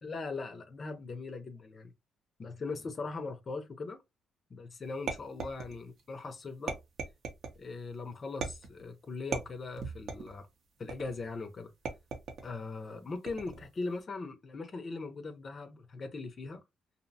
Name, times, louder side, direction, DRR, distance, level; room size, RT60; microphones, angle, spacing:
voice 1, 0.0-1.9 2.4-4.0 4.5-6.7 7.6-10.5 10.8-11.7 12.4-16.6, left 3 dB, 40° left, 0.5 m, -40 dB
sound 1, 5.1-6.0 6.7-7.6 8.4-8.8 9.3-10.4 10.9-11.3 11.8-12.5 13.3-13.7, right 5 dB, 65° right, 0.6 m, -38 dB
2.7 x 2.0 x 2.6 m
cardioid pair, 90°, 0 cm